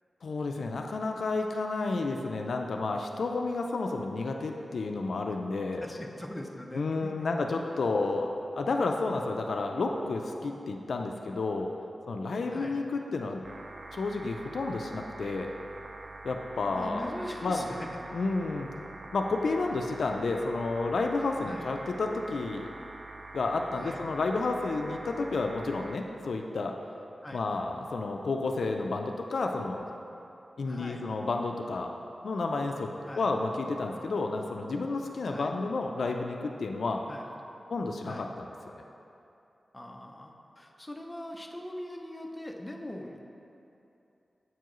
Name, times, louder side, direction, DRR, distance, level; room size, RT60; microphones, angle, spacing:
voice 1, 0.2-5.9 6.7-8.3 8.5-11.7 12.1-13.4 13.9-15.5 16.2-17.1 17.4-17.7 18.1-18.7 19.1-22.7 23.3-26.8 27.3-29.8 30.6-31.9 32.2-32.9 33.2-37.0 37.7-38.8, left 3 dB, 75° left, 3 dB, 0.3 m, -31 dB
voice 2, 5.8-7.5 12.5-12.8 16.7-17.9 21.4-21.7 23.7-24.0 27.2-27.4 30.6-31.0 33.1-33.3 35.3-35.5 37.1-37.3 38.0-38.3 39.7-43.3, left 1 dB, 15° left, 1 dB, 0.5 m, -41 dB
sound 1, 13.4-26.0, right 2 dB, 55° right, 0.3 m, -45 dB
8.1 x 4.6 x 3.0 m, 2.8 s
wide cardioid pair, 125°, 0 cm